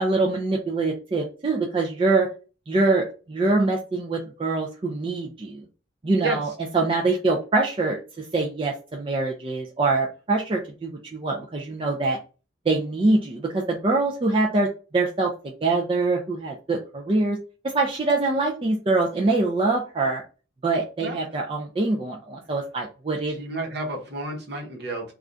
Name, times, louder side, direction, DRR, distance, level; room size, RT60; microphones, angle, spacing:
voice 1, 0.0-2.3 2.7-5.7 6.0-6.5 6.7-12.2 12.7-15.3 15.6-17.4 17.6-20.2 20.6-23.4, right 3 dB, 30° right, -1 dB, 0.4 m, -24 dB
voice 2, 23.3-25.1, right 3 dB, 60° right, 0 dB, 1.0 m, -30 dB
2.6 x 2.4 x 3.3 m, 0.34 s
head